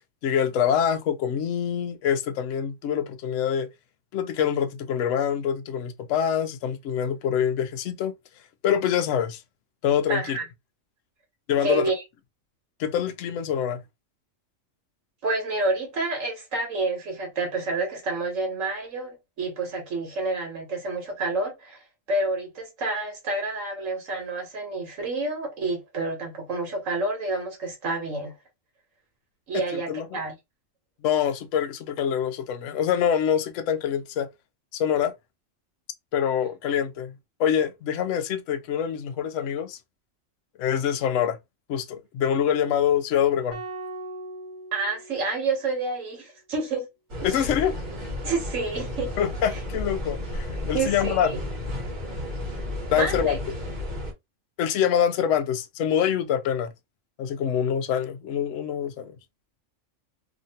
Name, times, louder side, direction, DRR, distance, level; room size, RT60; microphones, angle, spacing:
voice 1, 0.2-3.7 4.1-8.1 8.6-9.4 9.8-10.4 11.5-11.9 12.8-13.8 29.7-30.2 31.0-34.3 34.7-35.1 36.1-37.1 37.4-39.8 40.6-41.4 41.7-43.6 47.2-47.8 49.2-51.3 52.9-53.4 54.6-56.7 57.2-59.2, left 8 dB, 70° left, 0.9 m, -25 dB
voice 2, 10.1-10.4 11.6-12.0 15.2-21.8 22.1-28.3 29.5-30.3 44.7-46.9 47.2-47.5 48.2-49.1 49.5-49.6 50.7-51.4 52.9-53.4, right 2 dB, 75° right, 1.3 m, -29 dB
sound 1, 43.5-45.8, right 2 dB, 10° left, 1.0 m, -39 dB
sound 2, 47.1-54.1, left 1 dB, 40° right, 1.0 m, -33 dB
2.9 x 2.5 x 2.7 m
omnidirectional pair, 1.4 m